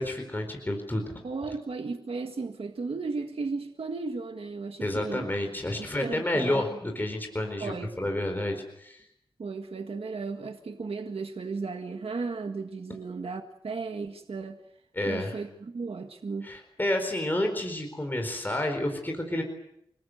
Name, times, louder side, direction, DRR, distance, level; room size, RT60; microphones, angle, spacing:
voice 1, 0.0-1.1 4.8-9.0 12.9-13.0 14.9-15.3 16.4-19.4, left 1 dB, 20° left, 3 dB, 4.4 m, -30 dB
voice 2, 1.2-5.3 5.8-6.6 7.6-7.9 9.4-14.6 15.1-16.5, right 4 dB, 80° right, 5 dB, 1.8 m, -35 dB
29.5 x 20.0 x 7.9 m, 0.77 s
wide cardioid pair, 95°, 10 cm